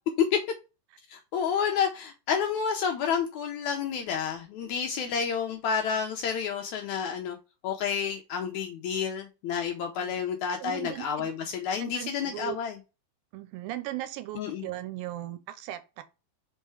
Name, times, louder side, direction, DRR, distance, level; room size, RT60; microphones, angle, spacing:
voice 1, 1.1-7.4 7.6-12.7 14.4-14.6, left 7 dB, 75° left, 1.8 m, -30 dB
voice 2, 10.6-11.3 11.8-12.6 13.3-16.0, right 15 dB, 90° right, 2.4 m, -38 dB
5.6 x 3.8 x 4.6 m
omnidirectional pair, 4.1 m